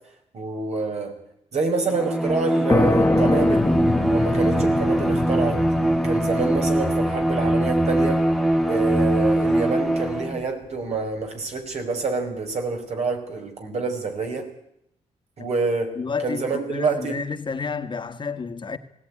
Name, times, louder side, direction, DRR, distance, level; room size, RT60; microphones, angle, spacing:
voice 1, 0.3-1.1 1.5-3.7 4.1-5.6 6.0-8.2 8.7-14.4 15.4-15.9 16.2-17.2, right 4 dB, 60° right, 5.6 m, -27 dB
Bowed string instrument, 1.9-10.4, right 1 dB, ahead, 1.6 m, -22 dB
sound 1, 2.7-10.1, left 3 dB, 20° left, 0.9 m, -26 dB
voice 2, 15.9-18.8, left 5 dB, 40° left, 1.8 m, -30 dB
19.5 x 17.0 x 9.9 m
cardioid pair, 85°, 12 cm